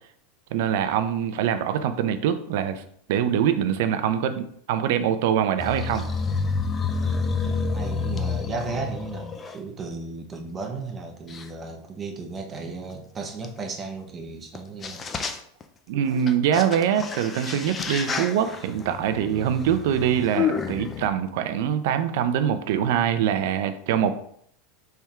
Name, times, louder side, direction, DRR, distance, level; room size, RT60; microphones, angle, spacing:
voice 1, 0.5-2.8 3.1-6.0 15.9-24.2, right 9 dB, 65° right, 10 dB, 0.5 m, -24 dB
sound 1, 5.6-9.6 10.3-10.4 11.3-11.4 13.4-13.5 14.5-14.6 14.8-15.6 16.1-21.1, left 5 dB, 20° left, 0.4 m, -29 dB
voice 2, 7.0-15.1, right 3 dB, 20° right, 3 dB, 0.7 m, -35 dB
4.3 x 3.4 x 3.5 m, 0.64 s
supercardioid pair, 150°, 0 cm